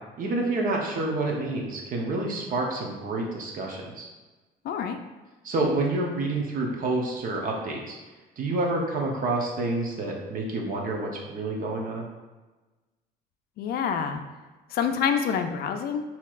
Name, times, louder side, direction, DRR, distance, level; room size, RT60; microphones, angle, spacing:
voice 1, 0.2-4.1 5.4-8.0 8.4-12.1, right 2 dB, 55° right, 0 dB, 0.8 m, -28 dB
voice 2, 4.6-5.0 13.6-14.2 14.7-16.0, left 7 dB, 65° left, 6 dB, 0.4 m, -27 dB
4.4 x 2.8 x 2.4 m, 1.2 s
cardioid pair, 110°, 17 cm